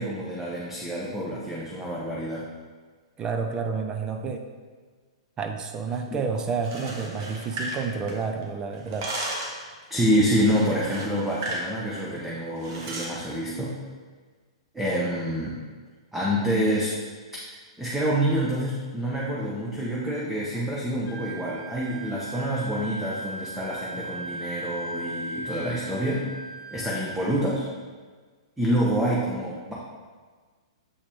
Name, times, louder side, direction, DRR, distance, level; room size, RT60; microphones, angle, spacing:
voice 1, 0.0-2.5 6.1-6.2 9.9-13.7 14.7-15.6 16.1-16.9 17.5-26.3 26.7-27.6 28.6-29.7, equal, 5° right, -6 dB, 1.0 m, -27 dB
voice 2, 3.2-4.4 5.4-9.1, right 5 dB, 25° right, 5 dB, 0.5 m, -30 dB
sound 1, 6.5-8.4 8.7-9.6 10.4-11.7 12.0-12.2 12.6-13.2, right 1 dB, 50° right, 1.5 m, -34 dB
Wind instrument woodwind instrument, 21.0-27.3, right 1 dB, 30° left, 1.4 m, -37 dB
7.0 x 4.7 x 3.5 m, 1.5 s
hypercardioid pair, 115°, 3 cm